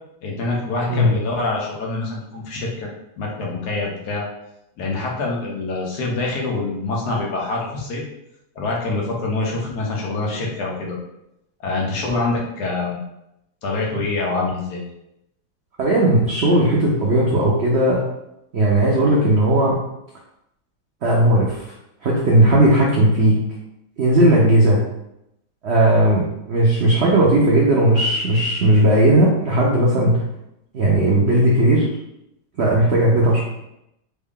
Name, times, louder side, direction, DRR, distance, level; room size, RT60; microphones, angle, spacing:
voice 1, 0.2-2.9 3.2-4.3 4.8-8.0 8.6-11.0 11.6-13.0 13.6-14.8, left 3 dB, 70° left, -2 dB, 1.3 m, -25 dB
voice 2, 15.8-18.0 18.5-19.8 21.0-21.7 22.0-23.4 24.0-24.8 25.6-30.2 30.7-31.9 32.6-33.4, right 1 dB, 75° right, -3 dB, 0.6 m, -16 dB
3.5 x 2.2 x 3.6 m, 0.83 s
omnidirectional pair, 1.9 m